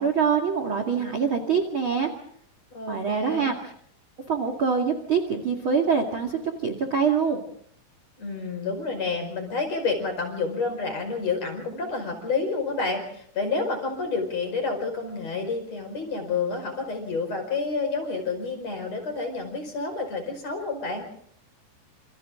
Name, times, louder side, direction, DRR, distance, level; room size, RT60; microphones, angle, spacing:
voice 1, 0.0-2.1 2.9-3.7 4.3-7.4, right 6 dB, 40° right, 6 dB, 2.2 m, -24 dB
voice 2, 2.7-3.5 8.2-21.0, left 4 dB, 35° left, 5 dB, 6.1 m, -29 dB
28.5 x 28.0 x 3.8 m, 0.63 s
omnidirectional pair, 5.3 m